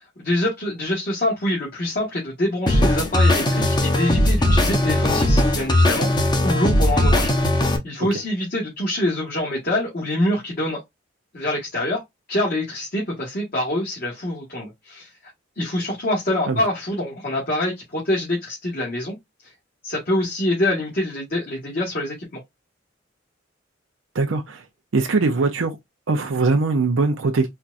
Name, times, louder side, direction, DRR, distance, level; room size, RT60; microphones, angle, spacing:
voice 1, 0.2-7.3 7.8-10.8 11.3-12.0 12.3-15.1 15.6-19.2 19.8-22.1, left 1 dB, 50° left, 1.6 m, -25 dB
sound 1, 2.7-7.8, left 1 dB, 20° left, 0.8 m, -18 dB
voice 2, 24.1-24.6 24.9-25.8 26.1-27.5, right 3 dB, 80° right, 0.6 m, -21 dB
4.4 x 2.4 x 2.5 m
head